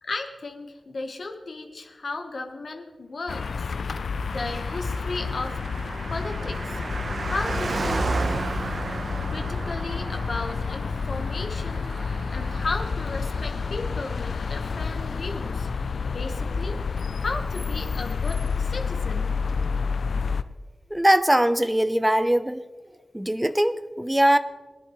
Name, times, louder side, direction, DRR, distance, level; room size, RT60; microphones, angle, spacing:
voice 1, 0.0-5.6 6.1-8.2 9.0-15.7 16.1-19.3, left 3 dB, 70° left, 3 dB, 1.2 m, -35 dB
sound 1, 3.3-20.4, left 5 dB, 90° left, 0.4 m, -29 dB
Car passing by, 4.2-16.0 16.3-16.4, right 3 dB, 65° right, 1.0 m, -34 dB
voice 2, 20.9-22.6 23.1-24.4, right 1 dB, 10° right, 12 dB, 0.6 m, -21 dB
20.5 x 10.5 x 3.2 m, 1.2 s
wide cardioid pair, 95°, 0 cm